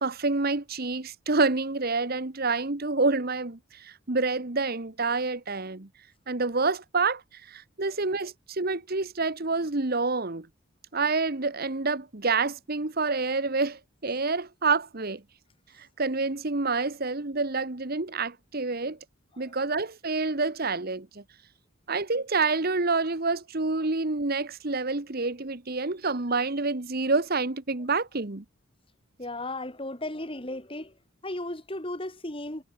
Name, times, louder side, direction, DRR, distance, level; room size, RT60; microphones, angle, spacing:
voice 1, 0.0-5.9 6.3-10.5 10.9-15.2 15.8-19.0 19.4-21.2 21.9-28.4, right 3 dB, 45° right, 1.2 m, -28 dB
voice 2, 29.2-30.9 31.2-32.6, left 1 dB, 25° left, 2.7 m, -35 dB
head